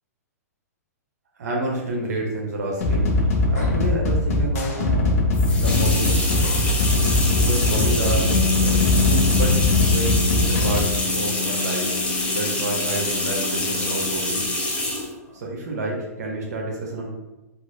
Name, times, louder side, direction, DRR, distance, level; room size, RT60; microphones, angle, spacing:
voice 1, 1.4-5.1 5.5-6.3 7.3-8.3 8.6-11.9 12.2-14.5 15.3-17.1, right 2 dB, 75° right, -2 dB, 0.6 m, -29 dB
sound 1, 2.8-10.8, left 2 dB, 65° left, 0.7 m, -21 dB
sound 2, 5.3-15.1, left 1 dB, 10° left, 0.6 m, -26 dB
Bass guitar, 8.2-14.5, left 6 dB, 5° right, 1.1 m, -29 dB
2.9 x 2.4 x 2.5 m, 1.1 s
hypercardioid pair, 120°, 9 cm